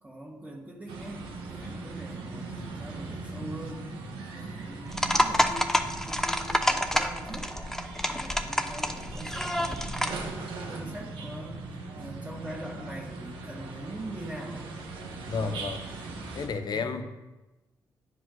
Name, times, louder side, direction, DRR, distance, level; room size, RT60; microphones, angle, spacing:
voice 1, 0.0-4.0 4.3-7.5 8.0-14.7 16.7-16.9, right 1 dB, 15° right, -3 dB, 1.8 m, -43 dB
sound 1, 0.9-16.5, right 3 dB, 85° right, 1.1 m, -40 dB
sound 2, 4.9-10.2, left 1 dB, 5° left, 0.7 m, -28 dB
voice 2, 15.3-15.8 16.3-17.0, left 5 dB, 60° left, 8 dB, 0.8 m, -31 dB
10.5 x 5.0 x 3.8 m, 1.1 s
supercardioid pair, 60°, 8 cm